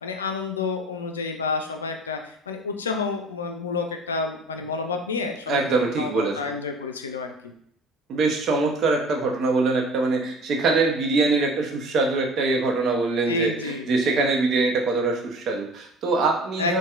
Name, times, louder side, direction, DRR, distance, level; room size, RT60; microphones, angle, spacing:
voice 1, 0.0-7.5 13.3-13.9 16.6-16.8, left 4 dB, 90° left, 5 dB, 0.3 m, -29 dB
voice 2, 5.5-6.5 8.1-16.8, right 3 dB, 55° right, 2 dB, 0.7 m, -23 dB
4.1 x 2.2 x 2.4 m, 0.67 s
hypercardioid pair, 55°, 0 cm